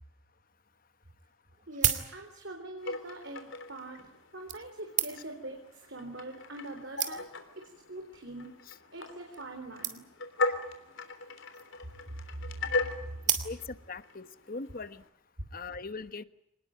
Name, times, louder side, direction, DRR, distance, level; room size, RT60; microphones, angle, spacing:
sound 1, 0.7-0.8 1.5-2.6 3.5-3.7 4.5-5.5 6.3-6.4 6.6-6.7 7.0-7.5 8.2-8.4 8.7-8.8 9.0-9.1 9.3-9.5 9.8-10.3 11.3-11.8 13.2-13.9 14.5-14.6, right 9 dB, 35° right, 2.5 m, -33 dB
voice 1, 1.7-4.1 4.3-7.2 7.9-8.5 8.9-10.0, right 2 dB, 60° right, 3 dB, 4.0 m, -43 dB
sound 2, 2.8-15.1, left 3 dB, 65° left, 3.5 m, -39 dB
voice 2, 7.0-7.3 8.6-8.7 13.4-13.6 13.9-15.0 15.5-16.2, left 3 dB, 45° left, 12 dB, 1.2 m, -40 dB
26.5 x 19.5 x 8.9 m, 0.81 s
head